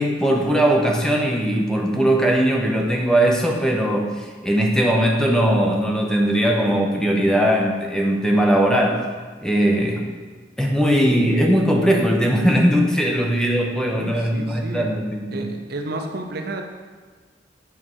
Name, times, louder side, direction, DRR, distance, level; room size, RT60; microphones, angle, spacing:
voice 1, 0.0-9.0 9.4-10.1 10.6-15.5, right 1 dB, 5° left, 0 dB, 0.6 m, -19 dB
voice 2, 13.8-14.9 15.3-16.6, right 2 dB, 55° right, 3 dB, 0.6 m, -31 dB
8.2 x 3.7 x 4.5 m, 1.4 s
head